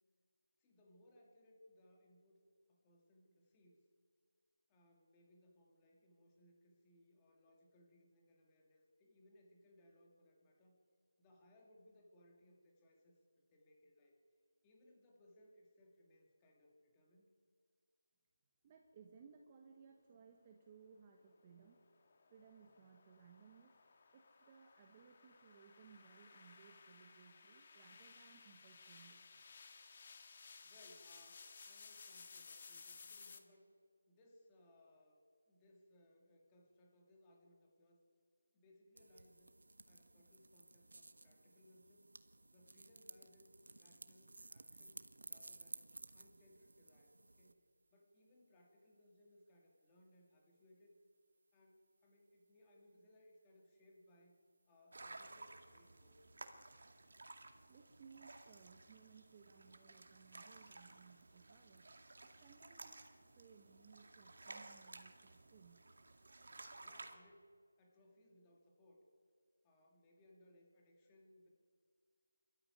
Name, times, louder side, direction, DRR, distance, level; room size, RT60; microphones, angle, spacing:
voice 1, 0.6-2.4 2.7-3.9 4.7-10.8 11.2-13.2 13.5-14.2 14.6-17.3 30.3-33.7 34.1-35.2 35.5-38.0 38.5-39.6 39.9-42.1 42.5-45.9 46.1-47.6 47.9-51.0 51.5-56.3 66.4-69.1 69.6-71.5, left 1 dB, 10° left, 0 dB, 2.3 m, -68 dB
voice 2, 18.6-21.8 22.3-23.7 24.1-29.2 57.7-61.9 62.2-63.1 63.3-65.8, right 6 dB, 15° right, 3 dB, 1.2 m, -63 dB
sound 1, 21.3-33.4, left 5 dB, 30° left, 1.6 m, -59 dB
sound 2, 39.0-47.5, right 2 dB, 75° right, 1.5 m, -56 dB
sound 3, 54.9-67.2, right 2 dB, 55° right, 2.2 m, -56 dB
25.5 x 13.5 x 9.4 m, 2.2 s
figure-of-eight pair, 175°, 0 cm